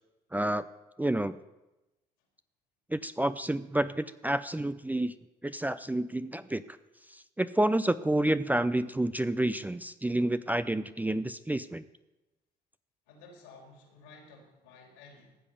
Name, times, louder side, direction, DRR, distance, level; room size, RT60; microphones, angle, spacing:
voice 1, 0.3-0.6 1.0-1.4 2.9-5.1 5.4-6.6 7.1-11.8, right 1 dB, 10° right, 13 dB, 0.6 m, -29 dB
voice 2, 13.1-15.4, left 3 dB, 75° left, 2 dB, 3.4 m, -53 dB
15.0 x 8.3 x 5.4 m, 1.0 s
hypercardioid pair, 50°, 20 cm